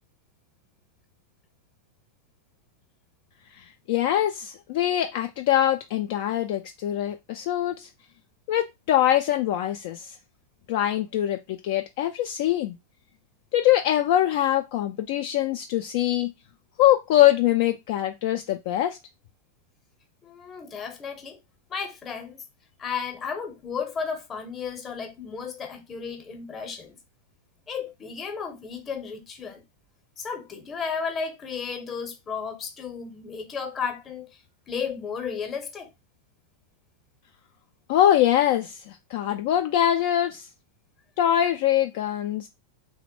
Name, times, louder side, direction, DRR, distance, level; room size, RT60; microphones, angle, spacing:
voice 1, 3.6-7.9 8.5-10.1 10.7-12.8 13.5-16.3 16.8-19.0 37.9-40.5 41.2-42.5, left 12 dB, 50° left, 0.3 m, -23 dB
voice 2, 20.2-21.4 21.7-22.4 22.8-27.0 27.7-29.6 30.2-34.4 34.7-35.9, left 6 dB, 20° left, 0.8 m, -33 dB
3.1 x 2.1 x 3.0 m
figure-of-eight pair, 90°, 0 cm